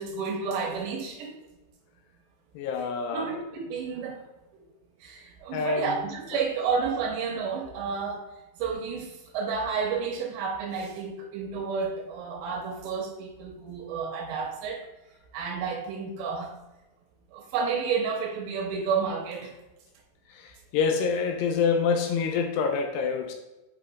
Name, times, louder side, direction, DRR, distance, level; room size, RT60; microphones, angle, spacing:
voice 1, 0.0-1.4 3.1-4.2 4.5-4.6 5.0-8.3 8.6-14.8 15.3-16.6 17.3-19.5, right 5 dB, 80° right, 1 dB, 2.9 m, -31 dB
voice 2, 2.6-3.3 5.5-6.0 20.3-23.3, left 5 dB, 85° left, 4 dB, 2.4 m, -26 dB
8.5 x 4.9 x 2.4 m, 1.0 s
omnidirectional pair, 5.5 m